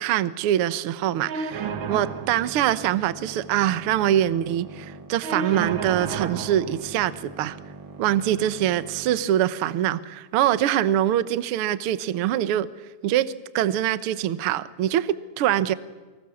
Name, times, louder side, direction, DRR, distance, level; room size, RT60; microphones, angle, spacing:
voice 1, 0.0-7.6 8.0-12.7 13.0-15.7, right 12 dB, 65° right, 14 dB, 1.4 m, -24 dB
sound 1, 1.3-9.3, right 5 dB, 50° right, 1.9 m, -35 dB
29.0 x 25.0 x 7.1 m, 1.3 s
omnidirectional pair, 3.5 m